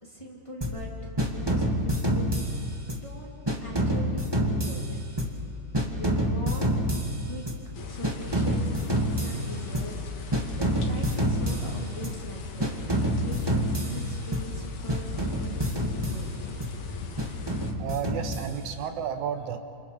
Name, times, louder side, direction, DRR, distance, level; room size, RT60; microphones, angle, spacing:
voice 1, 0.0-5.0 5.7-6.7 7.2-7.4 7.9-12.7 13.2-16.3, left 1 dB, 10° left, -3 dB, 2.9 m, -42 dB
sound 1, 0.6-0.9 1.2-3.1 3.5-5.5 5.7-7.7 8.0-10.0 10.3-12.3 12.6-14.6 14.9-16.8 17.2-18.8, equal, 10° right, 1.2 m, -28 dB
sound 2, 7.7-17.7, left 4 dB, 90° left, 3.0 m, -40 dB
voice 2, 17.8-19.6, right 8 dB, 85° right, 7 dB, 2.6 m, -32 dB
29.0 x 27.0 x 5.0 m, 2.3 s
omnidirectional pair, 3.3 m